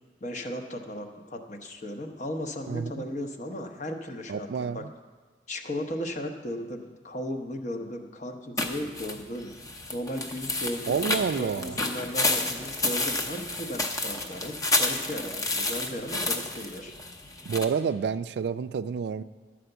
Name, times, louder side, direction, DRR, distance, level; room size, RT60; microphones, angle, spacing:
voice 1, 0.2-4.8 5.5-9.5 9.9-16.9, equal, 45° left, 5 dB, 0.9 m, -36 dB
voice 2, 2.7-3.0 4.3-4.8 10.9-11.8 17.5-19.2, right 6 dB, 65° right, 13 dB, 0.3 m, -29 dB
sound 1, 8.6-17.6, left 2 dB, 20° left, 0.7 m, -30 dB
11.5 x 5.0 x 7.9 m, 1.4 s
head